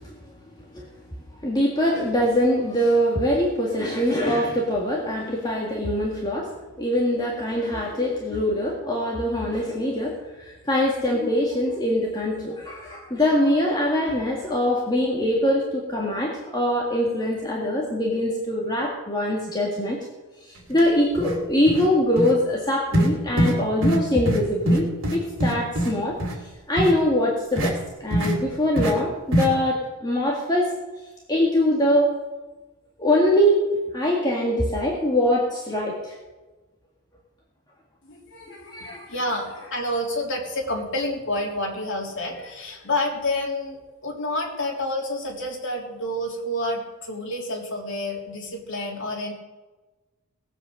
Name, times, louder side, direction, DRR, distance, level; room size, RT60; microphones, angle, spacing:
voice 1, 1.4-6.5 6.8-20.0 20.5-26.2 26.7-30.7 31.3-32.1 33.0-33.6 33.9-36.1 38.5-39.0, left 1 dB, 20° left, -2 dB, 1.8 m, -23 dB
sound 1, 20.7-20.8 21.1-21.4 21.7-21.9 22.2-22.3 22.9-23.1 23.4-23.6 23.8-24.0 24.3-24.4 24.7-25.9 26.2-26.3 26.8-26.9 27.6-27.7 28.1-28.3 28.8-28.9 29.3-29.5, right 1 dB, 60° right, 2.9 m, -22 dB
voice 2, 38.0-49.3, left 1 dB, 55° left, -1 dB, 3.3 m, -29 dB
18.5 x 8.1 x 6.5 m, 1.2 s
head